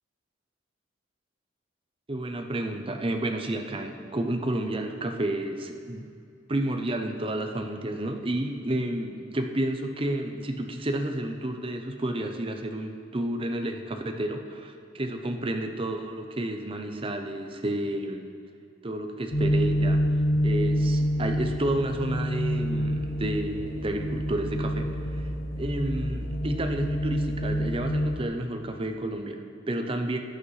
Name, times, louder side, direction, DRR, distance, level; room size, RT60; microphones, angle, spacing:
voice 1, 2.1-6.1 6.5-18.2 18.8-20.0 20.4-25.3 25.6-30.2, right 1 dB, 30° right, 4 dB, 0.7 m, -31 dB
sound 1, 19.3-28.2, equal, 45° left, 0.8 m, -27 dB
14.0 x 9.9 x 3.2 m, 2.4 s
head